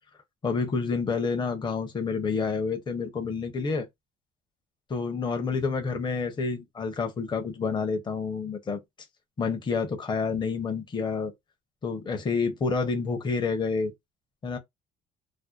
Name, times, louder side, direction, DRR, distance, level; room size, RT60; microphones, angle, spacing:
voice 1, 0.4-3.9 4.9-8.8 9.4-11.3 11.8-13.9 14.4-14.6, left 5 dB, 25° left, 0.6 m, -28 dB
2.6 x 2.2 x 2.2 m
cardioid pair, 110°, 17 cm